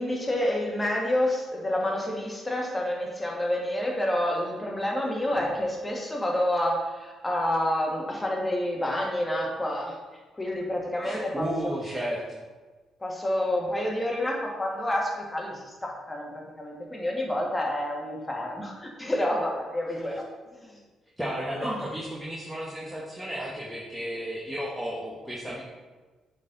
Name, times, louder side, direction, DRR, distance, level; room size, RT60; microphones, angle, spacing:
voice 1, 0.0-10.0 10.4-11.8 13.0-20.1 20.5-20.8 21.6-21.8, left 1 dB, 20° left, -1 dB, 1.8 m, -28 dB
voice 2, 11.0-12.4 21.2-25.6, equal, 10° right, -5 dB, 1.5 m, -33 dB
7.3 x 4.3 x 4.0 m, 1.3 s
supercardioid pair, 55°, 0 cm